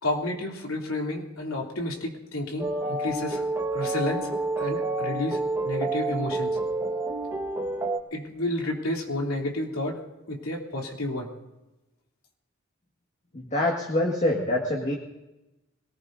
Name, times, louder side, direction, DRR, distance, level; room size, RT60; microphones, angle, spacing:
voice 1, 0.0-3.5 3.7-4.3 4.6-6.6 8.1-11.3, left 1 dB, 85° left, 0 dB, 3.0 m, -31 dB
sound 1, 2.6-8.0, right 2 dB, 15° right, 1.4 m, -29 dB
voice 2, 13.3-15.0, left 1 dB, 35° left, 0 dB, 1.8 m, -25 dB
25.0 x 19.0 x 2.7 m, 1.0 s
head